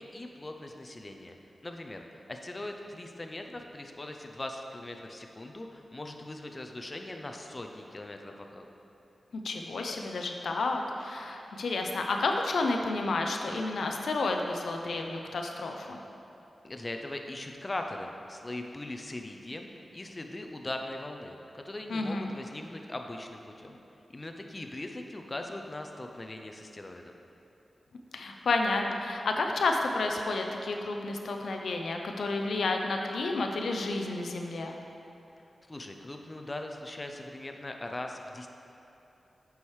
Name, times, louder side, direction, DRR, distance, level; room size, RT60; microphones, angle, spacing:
voice 1, 0.0-1.4 1.6-8.7 16.6-23.8 24.1-27.1 35.7-38.5, left 1 dB, 30° left, 3 dB, 0.4 m, -40 dB
voice 2, 9.4-16.0 21.9-22.4 28.1-34.8, left 3 dB, 85° left, 3 dB, 0.4 m, -31 dB
8.4 x 4.7 x 3.2 m, 2.9 s
wide cardioid pair, 80°, 0 cm